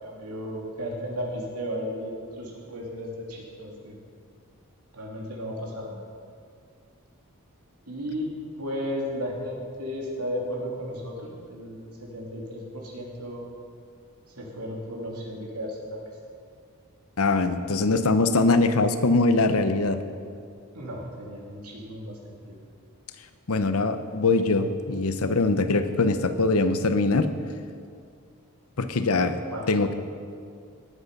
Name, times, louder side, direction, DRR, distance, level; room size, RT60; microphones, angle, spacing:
voice 1, 0.0-4.0 4.9-6.0 7.9-8.3 8.6-13.5 14.4-16.1 20.7-22.6 29.5-29.8, equal, 90° right, -2 dB, 2.9 m, -34 dB
voice 2, 17.2-20.0 23.5-27.3 28.8-29.4 29.7-29.9, left 3 dB, 75° left, 10 dB, 0.9 m, -22 dB
18.0 x 8.4 x 5.4 m, 2.3 s
head